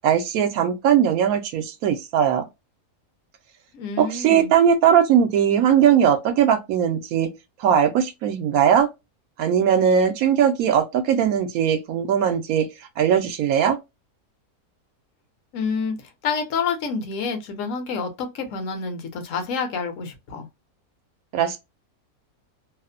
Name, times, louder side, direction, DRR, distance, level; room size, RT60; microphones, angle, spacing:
voice 1, 0.0-2.4 4.0-7.3 7.6-8.9 9.4-12.7 13.0-13.8 21.3-21.6, right 8 dB, 75° right, 1.0 m, -19 dB
voice 2, 3.7-4.5 15.5-20.5, left 5 dB, 65° left, 1.1 m, -28 dB
2.8 x 2.0 x 2.4 m
omnidirectional pair, 1.5 m